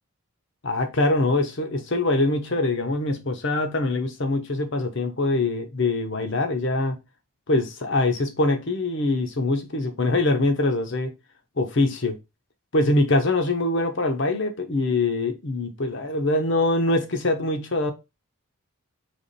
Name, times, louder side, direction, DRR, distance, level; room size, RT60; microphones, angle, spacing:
voice 1, 0.6-7.0 7.5-11.1 11.6-12.2 12.7-17.9, left 2 dB, 55° left, 0.9 m, -23 dB
3.5 x 3.1 x 4.1 m
head